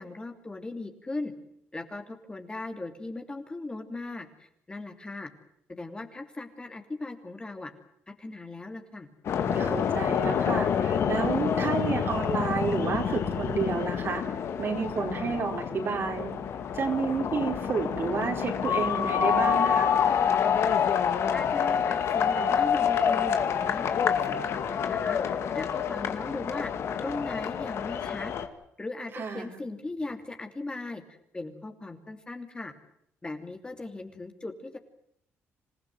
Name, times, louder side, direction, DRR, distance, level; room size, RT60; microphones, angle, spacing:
voice 1, 0.0-1.3 1.7-5.3 5.7-7.7 8.1-9.1 21.3-25.2 25.5-26.7 27.0-28.3 28.8-31.0 31.3-32.7 33.2-34.8, left 2 dB, 20° left, 5 dB, 2.8 m, -38 dB
sound 1, 9.2-28.5, left 7 dB, 65° left, 2.2 m, -27 dB
voice 2, 9.5-14.2 14.6-16.3 16.7-19.9 29.1-29.5, right 5 dB, 50° right, 3 dB, 4.7 m, -30 dB
27.0 x 15.5 x 9.5 m, 0.73 s
cardioid pair, 95°, 5 cm